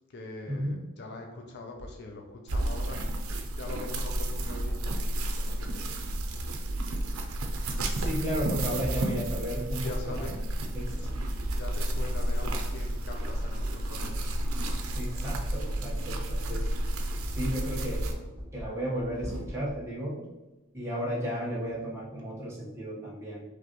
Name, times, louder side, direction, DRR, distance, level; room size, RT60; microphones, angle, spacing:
voice 1, 0.1-3.1 3.5-5.9 9.8-10.3 10.9-11.1 11.5-14.3, left 2 dB, 50° left, 2 dB, 0.5 m, -42 dB
sound 1, 1.8-2.3 3.6-5.5 6.1-6.7 7.4-7.5 8.0-9.9 11.0-11.6 12.3-15.8 16.2-16.3 16.7-19.9, equal, 5° left, 0.9 m, -43 dB
sound 2, 2.5-18.1, right 1 dB, 85° right, 0.6 m, -31 dB
voice 2, 7.9-10.3 10.7-11.1 14.9-16.7 17.2-18.0 18.5-20.2 20.7-23.4, equal, 15° right, -6 dB, 1.2 m, -34 dB
5.0 x 3.2 x 3.0 m, 1.1 s
head